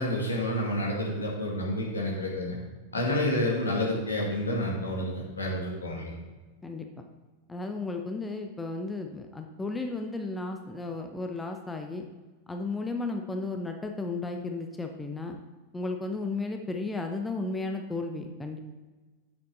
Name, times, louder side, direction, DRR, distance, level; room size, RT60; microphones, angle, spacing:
voice 1, 0.0-2.6 2.9-6.1, left 1 dB, 75° left, -3 dB, 2.4 m, -29 dB
voice 2, 6.6-7.1 7.5-12.1 12.5-15.4 15.7-18.6, left 3 dB, 10° left, 4 dB, 0.7 m, -34 dB
7.8 x 7.0 x 4.0 m, 1.3 s
figure-of-eight pair, 90°, 0 cm